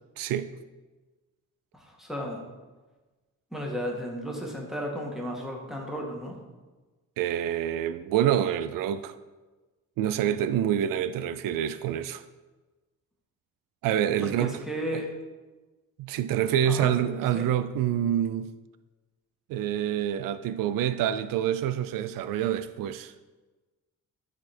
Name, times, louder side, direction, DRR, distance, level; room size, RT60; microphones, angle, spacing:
voice 1, 0.2-0.5 7.2-9.2 10.0-12.2 13.8-14.6 14.9-15.0 16.0-18.5 19.5-23.1, right 10 dB, 90° right, 0.5 m, -27 dB
voice 2, 1.7-2.4 3.5-6.4 14.2-15.1 16.7-16.9 17.3-17.5, equal, ahead, 1.8 m, -34 dB
12.5 x 4.2 x 4.4 m
cardioid pair, 105°, 32 cm